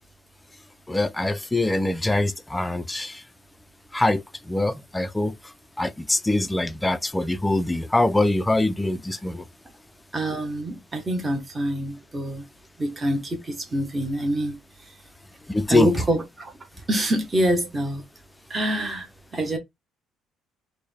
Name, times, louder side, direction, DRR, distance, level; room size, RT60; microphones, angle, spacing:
voice 1, 0.9-3.2 3.9-5.3 5.8-9.4 15.5-15.9, left 2 dB, 10° left, 0.3 m, -23 dB
voice 2, 10.1-12.5 12.8-14.6 14.9-15.0 15.7-16.5 16.9-18.0 18.5-19.6, right 1 dB, 15° right, 0.7 m, -26 dB
4.3 x 2.0 x 3.3 m
cardioid pair, 150°, 0 cm